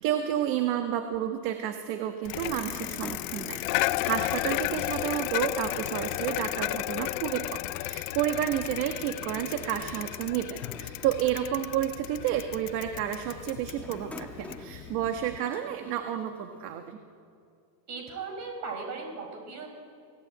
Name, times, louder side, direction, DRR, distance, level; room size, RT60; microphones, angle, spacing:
voice 1, 0.0-17.0, right 11 dB, 50° right, 6 dB, 1.5 m, -31 dB
Bicycle, 2.2-15.4, left 20 dB, 55° left, 0.6 m, -34 dB
sound 1, 2.6-6.0 6.3-6.4 7.5-11.7 12.4-12.7 13.6-16.9, left 2 dB, 5° left, 1.4 m, -48 dB
voice 2, 17.9-19.7, right 4 dB, 35° right, 3 dB, 5.0 m, -37 dB
29.0 x 18.0 x 8.8 m, 2.4 s
supercardioid pair, 160°, 50 cm